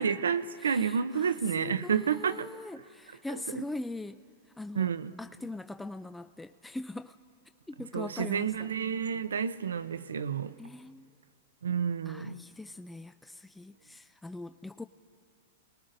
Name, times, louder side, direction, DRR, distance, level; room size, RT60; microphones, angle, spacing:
voice 1, 0.0-2.5 3.3-3.6 4.7-5.1 7.9-10.5 11.6-12.4, right 7 dB, 85° right, 0.5 m, -30 dB
voice 2, 0.6-4.2 4.6-4.9 5.2-7.2 7.7-8.7 10.6-11.1 12.1-14.8, left 2 dB, 5° left, 0.3 m, -41 dB
28.5 x 20.0 x 2.6 m
hypercardioid pair, 115°, 0 cm